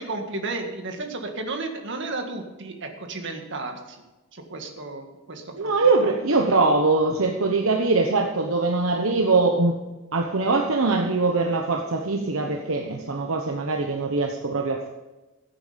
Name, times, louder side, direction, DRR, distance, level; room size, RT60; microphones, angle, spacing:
voice 1, 0.0-4.0 4.3-6.1, right 3 dB, 60° right, 4 dB, 2.0 m, -33 dB
voice 2, 5.5-9.8 10.1-14.9, right 3 dB, 75° right, 3 dB, 1.1 m, -22 dB
15.5 x 8.8 x 5.2 m, 1.1 s
head